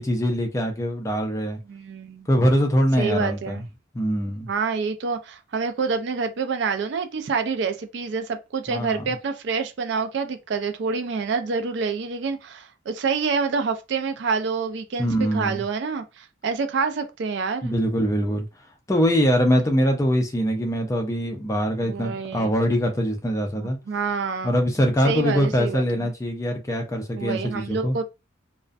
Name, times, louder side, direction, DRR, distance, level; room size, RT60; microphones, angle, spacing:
voice 1, 0.0-1.6 2.3-3.6 3.9-4.5 8.7-9.0 15.0-15.6 17.6-18.5 18.9-23.8 24.4-28.0, equal, 15° left, 0.4 m, -23 dB
voice 2, 1.7-2.3 3.0-3.6 4.5-17.7 21.8-22.5 23.5-24.5 25.0-26.1 27.2-28.0, right 5 dB, 55° right, 0.3 m, -27 dB
2.4 x 2.1 x 2.4 m
head